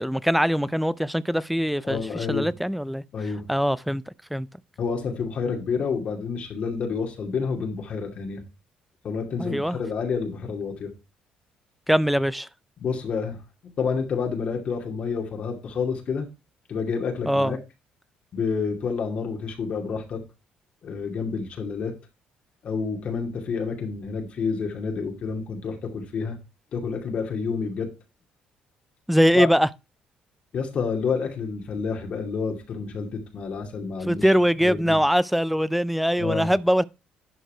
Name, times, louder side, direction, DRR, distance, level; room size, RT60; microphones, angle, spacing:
voice 1, 0.0-3.0 3.5-4.0 4.3-4.5 9.4-9.8 11.9-12.5 17.3-17.5 29.1-29.7 34.1-36.8, equal, ahead, 0.5 m, -22 dB
voice 2, 1.8-2.5 3.1-3.4 4.8-8.4 9.0-10.9 12.8-16.3 16.7-17.6 18.3-20.2 20.8-22.0 22.6-26.4 26.7-27.9 29.3-29.5 30.5-34.3 34.6-35.0 36.2-36.5, left 5 dB, 55° left, 2.5 m, -29 dB
11.0 x 4.7 x 4.5 m
cardioid pair, 105°, 3 cm